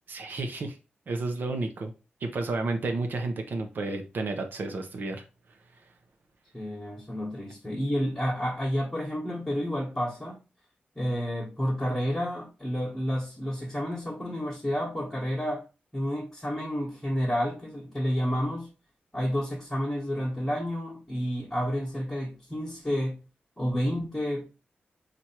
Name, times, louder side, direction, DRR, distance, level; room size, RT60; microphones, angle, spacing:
voice 1, 0.1-0.8 1.1-1.9 2.2-5.2, right 3 dB, 65° right, 0.7 m, -31 dB
voice 2, 6.5-10.4 10.9-15.6 15.9-18.7 19.1-23.2 23.6-24.6, equal, 15° left, 1.2 m, -30 dB
4.5 x 2.5 x 4.3 m
wide cardioid pair, 160°, 4 cm